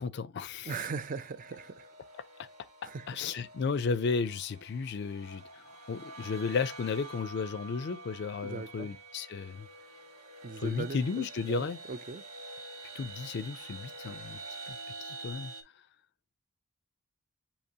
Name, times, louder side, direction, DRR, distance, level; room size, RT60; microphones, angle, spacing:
voice 1, 0.0-0.8 2.4-2.5 3.1-9.7 10.6-11.8 12.9-14.4 14.7-15.5, left 5 dB, 50° left, 0.4 m, -34 dB
voice 2, 0.6-1.9 2.8-3.2 8.4-8.9 10.4-12.2, right 4 dB, 40° right, 0.3 m, -39 dB
sound 1, 0.7-15.6, right 2 dB, 85° right, 2.0 m, -47 dB
6.5 x 2.9 x 2.7 m
head